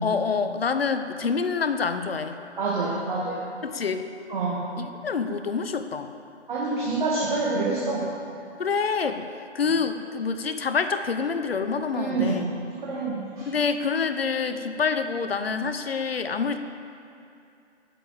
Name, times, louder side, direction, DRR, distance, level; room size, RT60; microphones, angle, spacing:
voice 1, 0.0-2.4 3.6-4.1 4.8-6.1 8.6-9.3 9.5-12.5 13.5-16.6, left 5 dB, 55° left, 9 dB, 0.8 m, -27 dB
voice 2, 2.6-3.4 4.3-4.6 6.5-8.1 11.9-12.5 12.8-13.5, right 3 dB, 40° right, -6 dB, 2.0 m, -27 dB
8.2 x 7.5 x 7.6 m, 2.6 s
figure-of-eight pair, 155°, 36 cm